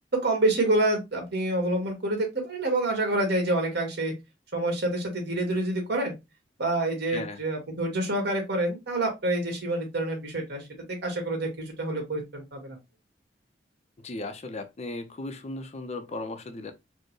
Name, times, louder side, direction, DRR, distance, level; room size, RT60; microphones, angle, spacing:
voice 1, 0.1-4.1 4.5-6.1 6.6-12.8, right 2 dB, 65° right, 1.6 m, -27 dB
voice 2, 7.1-7.4 14.0-16.7, left 2 dB, 40° left, 0.5 m, -36 dB
4.3 x 2.1 x 3.0 m
head